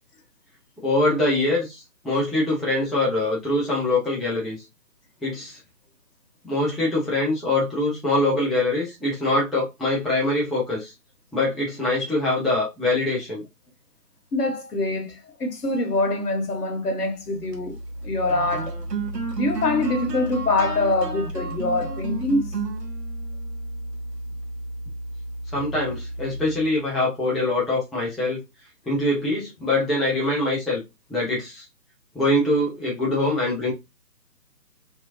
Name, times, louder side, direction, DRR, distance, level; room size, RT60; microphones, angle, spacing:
voice 1, 0.8-4.6 5.2-5.6 6.4-10.9 11.3-13.4 25.5-28.4 28.9-30.8 31.1-31.7 32.1-33.7, left 2 dB, ahead, 0.4 m, -23 dB
voice 2, 14.3-17.8 18.0-18.8 19.4-22.5, left 2 dB, 70° left, 1.1 m, -24 dB
sound 1, 17.3-26.9, right 2 dB, 85° right, 0.9 m, -32 dB
2.8 x 2.3 x 2.5 m
figure-of-eight pair, 150°, 48 cm